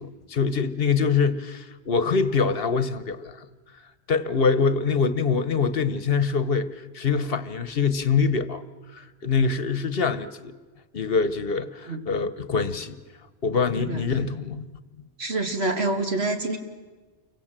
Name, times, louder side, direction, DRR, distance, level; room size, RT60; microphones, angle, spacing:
voice 1, 0.0-3.5 4.1-6.7 6.9-8.6 8.9-10.5 10.9-13.0 13.4-14.7, left 5 dB, 60° left, 1.2 m, -24 dB
voice 2, 13.7-14.2 15.2-16.6, right 2 dB, 75° right, 2.5 m, -27 dB
29.5 x 24.0 x 7.5 m
omnidirectional pair, 1.1 m